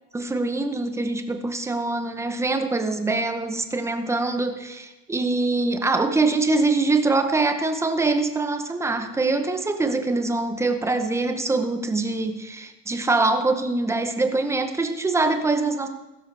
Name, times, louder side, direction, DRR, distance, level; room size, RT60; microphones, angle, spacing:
voice 1, 0.1-15.9, right 3 dB, 5° right, 7 dB, 0.8 m, -24 dB
16.0 x 12.5 x 3.3 m, 1.0 s
supercardioid pair, 135°, 46 cm